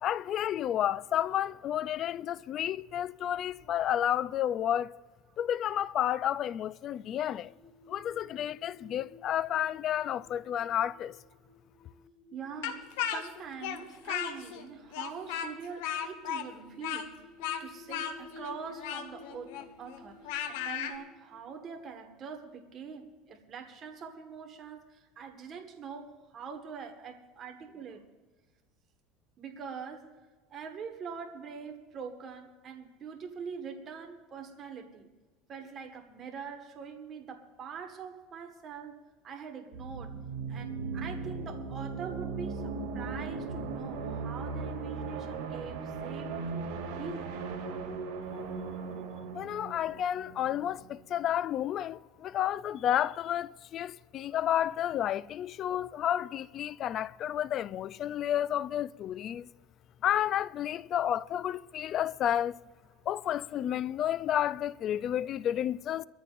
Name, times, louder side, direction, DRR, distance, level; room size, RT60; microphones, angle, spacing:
voice 1, 0.0-4.9 5.4-7.5 7.9-11.2 49.3-59.5 60.0-62.5 63.1-66.0, left 11 dB, 40° left, 0.4 m, -31 dB
sound 1, 6.9-23.2, left 3 dB, 25° left, 5.5 m, -55 dB
voice 2, 12.3-28.1 29.4-35.1 35.5-47.4 56.7-56.8 62.9-63.0, right 6 dB, 35° right, 1.6 m, -44 dB
Speech, 12.6-14.6 14.9-20.9, left 9 dB, 85° left, 1.3 m, -36 dB
sound 2, 39.7-51.3, right 4 dB, 70° right, 2.5 m, -38 dB
23.0 x 14.0 x 2.6 m
supercardioid pair, 130°, 0 cm